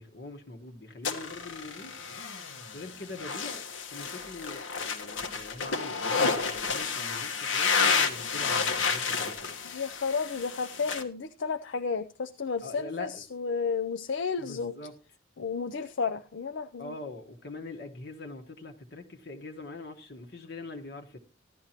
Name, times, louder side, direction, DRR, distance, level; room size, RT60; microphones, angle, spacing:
voice 1, 0.0-2.0 2.7-3.6 3.9-9.5 12.6-13.2 14.4-14.9 16.8-21.2, left 3 dB, 55° left, 3 dB, 1.2 m, -43 dB
sound 1, 1.0-11.0, left 5 dB, 90° left, 1.4 m, -30 dB
voice 2, 9.6-14.7 15.4-17.0, left 5 dB, 70° left, 8 dB, 0.5 m, -32 dB
15.0 x 11.5 x 2.9 m, 0.32 s
head